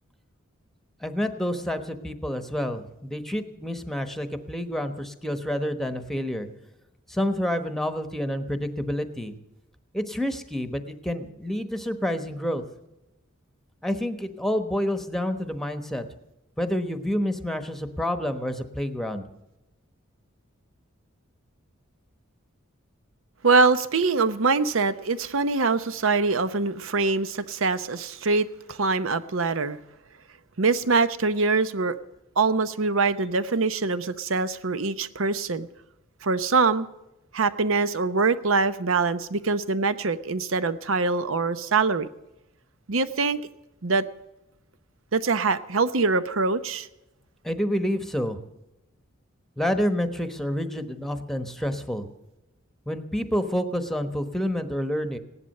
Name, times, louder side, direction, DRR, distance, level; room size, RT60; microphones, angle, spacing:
voice 1, 1.0-6.5 7.1-9.3 9.9-12.6 13.8-16.0 16.6-19.2 47.4-48.4 49.6-52.1 52.9-55.2, equal, ahead, 8 dB, 1.1 m, -28 dB
voice 2, 23.4-29.8 30.6-32.0 32.4-35.7 36.2-36.9 37.3-42.1 42.9-43.4 43.8-44.0 45.1-46.9, right 4 dB, 75° right, 13 dB, 0.8 m, -24 dB
17.0 x 11.0 x 6.6 m, 0.94 s
head